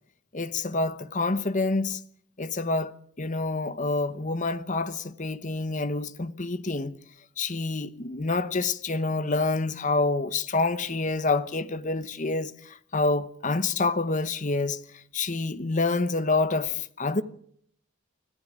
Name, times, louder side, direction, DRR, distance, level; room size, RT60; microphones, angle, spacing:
voice 1, 0.3-2.0 2.4-7.0 7.4-17.2, left 3 dB, 35° left, 1.0 m, -27 dB
25.0 x 14.5 x 7.4 m
head